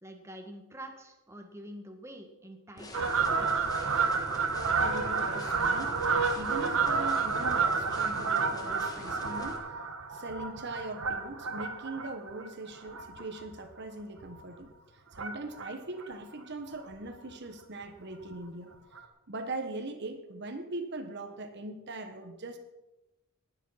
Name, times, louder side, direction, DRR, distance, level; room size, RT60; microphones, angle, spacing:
voice 1, 0.0-3.7, right 1 dB, 10° right, 4 dB, 1.5 m, -46 dB
sound 1, 2.8-9.6, left 1 dB, 15° left, 1.6 m, -45 dB
Fowl, 2.9-13.7 14.2-14.4 15.1-15.7 16.0-16.1 16.3-16.4 16.7-16.8 17.1-17.3 18.3-18.4 19.0-19.1, right 5 dB, 65° right, 1.4 m, -30 dB
voice 2, 4.8-6.0 6.3-9.7 10.1-14.7 14.9-18.7 19.3-22.6, right 2 dB, 50° right, 6 dB, 1.2 m, -40 dB
19.0 x 7.4 x 5.6 m, 1.0 s
head